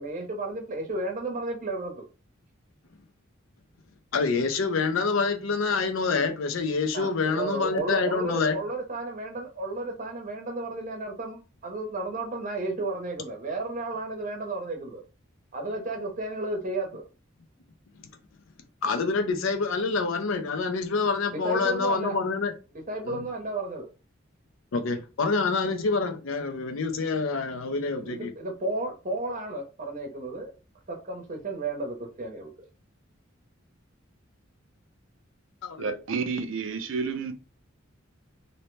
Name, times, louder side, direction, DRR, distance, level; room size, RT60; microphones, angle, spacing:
voice 1, 0.0-1.9 6.9-15.0 15.5-17.0 21.3-22.2 22.9-23.9 28.0-30.5 30.9-32.5, right 2 dB, 40° right, 0.7 m, -33 dB
voice 2, 4.1-8.6 18.8-22.5 23.0-23.2 24.7-28.3 35.6-35.9, left 4 dB, 85° left, 0.5 m, -27 dB
voice 3, 35.8-37.3, right 5 dB, 75° right, 0.5 m, -30 dB
2.7 x 2.1 x 3.1 m
head